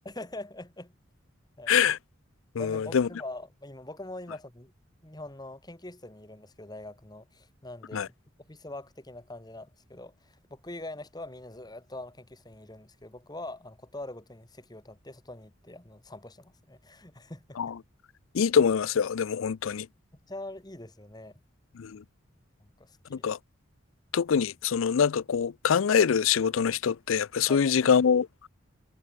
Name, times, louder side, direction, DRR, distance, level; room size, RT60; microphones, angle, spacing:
voice 1, 0.1-0.9 1.6-1.7 2.6-4.7 5.0-8.1 8.5-17.7 20.3-21.4 22.6-23.3 27.5-27.9, left 2 dB, 20° left, 1.8 m, -43 dB
voice 2, 1.7-2.0 2.6-3.1 7.9-8.1 17.6-17.7 18.3-19.9 21.8-22.0 23.1-23.4 24.1-28.5, left 7 dB, 80° left, 0.4 m, -24 dB
head